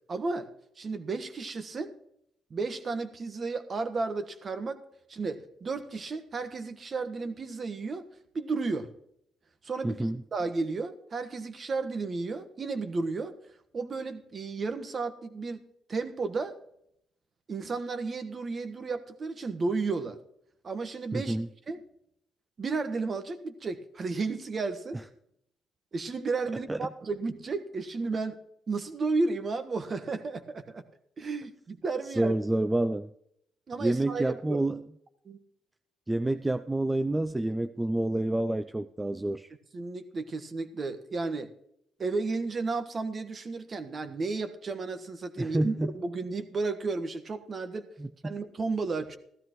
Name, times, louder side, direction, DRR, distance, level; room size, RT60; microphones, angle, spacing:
voice 1, 0.1-0.5 0.8-1.9 2.5-4.8 5.1-8.0 8.3-8.9 9.6-10.0 10.3-13.3 13.7-16.6 17.5-20.2 20.6-21.4 21.7-21.8 22.6-25.0 25.9-28.4 28.7-30.8 31.2-32.4 33.7-34.7 35.2-35.4 39.7-41.5 42.0-47.9 48.2-49.2, right 3 dB, 40° right, 9 dB, 1.4 m, -33 dB
voice 2, 9.8-10.2 21.1-21.5 26.7-26.8 32.2-33.1 33.8-34.8 36.1-39.5 45.4-45.9 48.0-48.3, right 1 dB, 15° right, 10 dB, 0.5 m, -28 dB
14.5 x 13.0 x 3.1 m, 0.73 s
cardioid pair, 90°, 0 cm